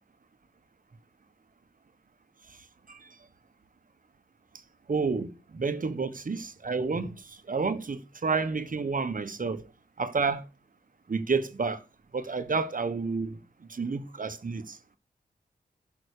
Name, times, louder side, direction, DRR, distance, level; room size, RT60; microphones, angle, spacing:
voice 1, 4.9-7.1 7.5-9.6 10.0-10.4 11.1-11.8 12.1-13.4 13.7-14.8, right 4 dB, 50° right, 1.3 m, -30 dB
11.0 x 6.1 x 6.7 m
cardioid pair, 40°, 18 cm